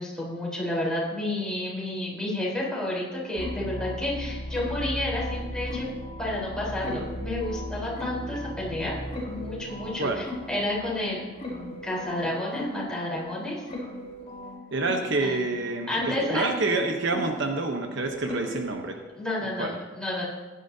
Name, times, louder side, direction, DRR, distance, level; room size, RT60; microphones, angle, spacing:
voice 1, 0.0-5.9 6.2-8.9 9.2-11.2 11.5-13.6 15.2-15.4 15.9-16.6 19.1-20.2, left 1 dB, 5° left, -6 dB, 4.1 m, -30 dB
sound 1, 3.4-18.8, left 1 dB, 30° left, 4.0 m, -37 dB
voice 2, 14.7-19.0 19.6-19.7, right 3 dB, 65° right, 4 dB, 1.0 m, -28 dB
16.0 x 11.5 x 2.8 m, 1.3 s
head